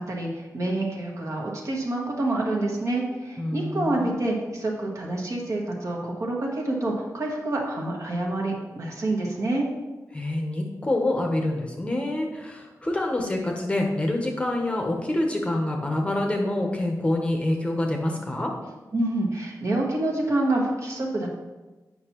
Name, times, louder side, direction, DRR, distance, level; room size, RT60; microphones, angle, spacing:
voice 1, 0.0-9.7 18.9-21.3, right 2 dB, 50° right, -2 dB, 1.3 m, -27 dB
voice 2, 3.4-4.2 10.1-18.5, left 1 dB, 20° left, 1 dB, 0.8 m, -26 dB
8.7 x 5.7 x 3.0 m, 1.2 s
wide cardioid pair, 165°, 6 cm